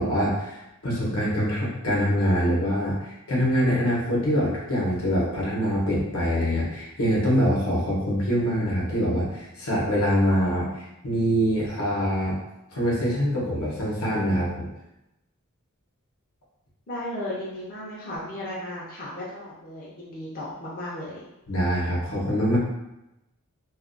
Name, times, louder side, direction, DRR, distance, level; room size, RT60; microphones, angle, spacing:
voice 1, 0.0-12.3 12.7-14.7 21.5-22.6, equal, 85° left, -5 dB, 0.8 m, -24 dB
voice 2, 16.9-21.2, left 1 dB, 40° left, -7 dB, 0.5 m, -35 dB
2.3 x 2.2 x 2.5 m, 0.92 s
head